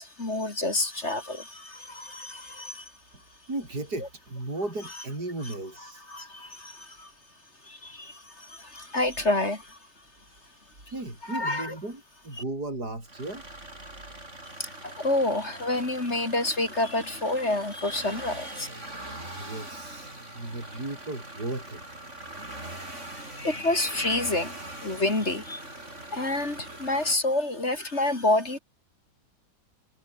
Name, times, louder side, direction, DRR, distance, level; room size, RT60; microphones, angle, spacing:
voice 1, 0.0-2.9 6.1-7.1 7.7-9.8 11.3-11.7 14.6-18.7 23.4-24.6 24.8-25.6 26.1-28.6, left 2 dB, 35° left, 3.7 m, -28 dB
voice 2, 3.5-6.0 10.9-13.4 19.4-21.8, right 2 dB, 55° right, 7.6 m, -35 dB
sound 1, 13.0-27.1, right 1 dB, 35° right, 8.0 m, -42 dB
omnidirectional pair, 2.0 m